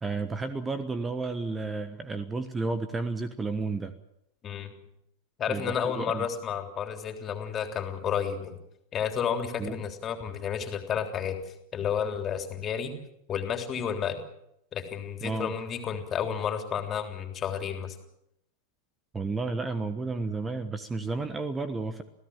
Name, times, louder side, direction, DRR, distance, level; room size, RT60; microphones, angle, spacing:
voice 1, 0.0-3.9 5.5-6.3 9.6-9.8 15.2-15.5 19.1-22.0, right 3 dB, 15° right, 12 dB, 1.3 m, -32 dB
voice 2, 5.4-8.6 8.9-12.9 13.3-14.2 14.7-17.9, left 8 dB, 25° left, 5 dB, 3.5 m, -31 dB
27.5 x 17.0 x 7.5 m, 0.78 s
figure-of-eight pair, 90°, 0 cm